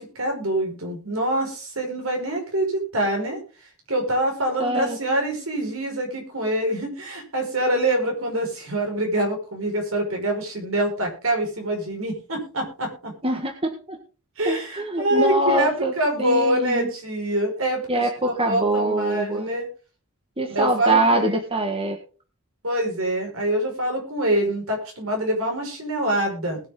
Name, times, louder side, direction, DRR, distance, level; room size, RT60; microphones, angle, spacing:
voice 1, 0.0-3.4 3.9-13.1 14.4-18.1 18.4-19.7 20.5-21.4 22.6-26.6, right 1 dB, 70° right, 2 dB, 5.6 m, -25 dB
voice 2, 4.6-5.0 13.2-14.0 14.4-15.9 16.2-16.9 17.9-19.5 20.4-22.0, right 1 dB, 25° right, 4 dB, 1.6 m, -24 dB
20.5 x 7.1 x 3.9 m, 0.36 s
head